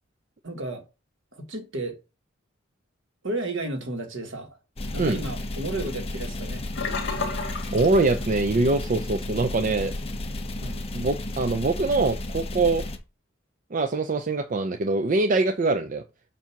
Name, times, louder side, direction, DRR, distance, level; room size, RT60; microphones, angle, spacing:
voice 1, 0.4-0.8 1.3-2.0 3.2-4.6 4.9-6.7 10.6-10.8, right 2 dB, 70° right, 1.5 m, -33 dB
sound 1, 4.8-13.0, left 1 dB, 30° left, 0.7 m, -33 dB
Sink (filling or washing), 6.7-8.7 9.0-9.3 9.7-9.8, left 4 dB, 55° left, 2.1 m, -32 dB
voice 2, 7.4-9.9 10.9-12.8 13.7-16.0, right 3 dB, 40° right, 0.5 m, -23 dB
7.3 x 2.7 x 5.8 m
head